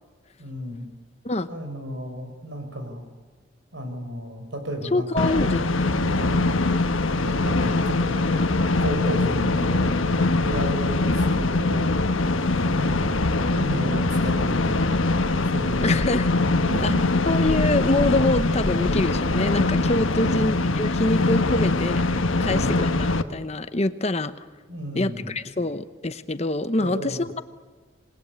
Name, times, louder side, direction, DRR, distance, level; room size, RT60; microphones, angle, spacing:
voice 1, 0.4-0.9 1.5-3.0 3.7-5.5 6.1-6.5 7.2-8.3 8.8-11.9 12.5-13.3 13.6-15.0 15.5-16.0 16.6-17.0 20.1-20.4 22.4-22.7 24.7-25.3 26.8-27.3, equal, 65° right, 6 dB, 6.0 m, -33 dB
voice 2, 4.9-6.3 15.8-16.3 16.8-16.9 17.3-24.3 24.9-27.4, left 2 dB, 35° left, 11 dB, 0.9 m, -25 dB
sound 1, 5.2-23.2, left 2 dB, 85° left, 1.4 m, -22 dB
27.0 x 20.5 x 9.6 m, 1.4 s
head